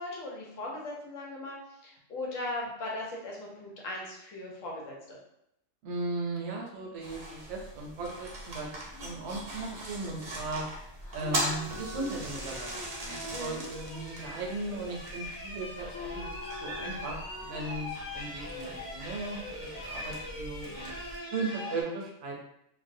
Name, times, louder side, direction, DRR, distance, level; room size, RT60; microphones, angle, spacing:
voice 1, 0.0-1.6 1.8-5.2 13.3-13.7, left 2 dB, 90° left, -2 dB, 1.1 m, -38 dB
voice 2, 5.8-8.7 9.0-10.6 11.1-12.7 13.0-16.3 16.6-20.9 21.3-22.4, right 2 dB, 70° right, -1 dB, 0.9 m, -37 dB
sound 1, 7.0-21.2, right 1 dB, 50° right, 0.6 m, -41 dB
sound 2, 8.9-10.5 11.0-14.9 15.7-17.8, left 3 dB, 65° left, 0.9 m, -45 dB
sound 3, 12.2-21.8, left 1 dB, 20° left, 0.6 m, -42 dB
2.5 x 2.0 x 2.6 m, 0.78 s
omnidirectional pair, 1.3 m